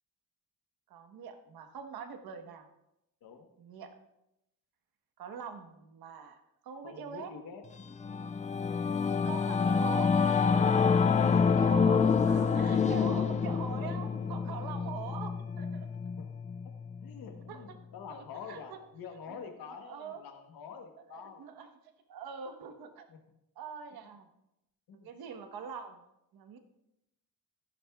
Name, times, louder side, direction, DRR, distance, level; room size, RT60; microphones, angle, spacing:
voice 1, 0.9-2.7 3.6-3.9 5.2-7.3 9.2-10.1 11.6-15.9 17.5-17.6 18.1-18.8 19.3-19.4 19.8-20.2 21.1-21.7 22.1-23.1 23.6-24.3 25.0-26.0 26.3-26.6, right 7 dB, 85° right, 6 dB, 1.3 m, -44 dB
voice 2, 6.8-7.6 8.0-8.3 9.5-9.9 10.8-11.4 12.7-13.3 14.2-14.3 16.1-16.3 17.0-21.4 23.1-23.2 24.1-24.2 24.9-25.1, left 6 dB, 75° left, 4 dB, 1.2 m, -47 dB
Singing / Musical instrument, 7.8-17.5, left 5 dB, 20° left, 0.3 m, -28 dB
15.0 x 10.5 x 2.4 m, 0.86 s
wide cardioid pair, 170°, 36 cm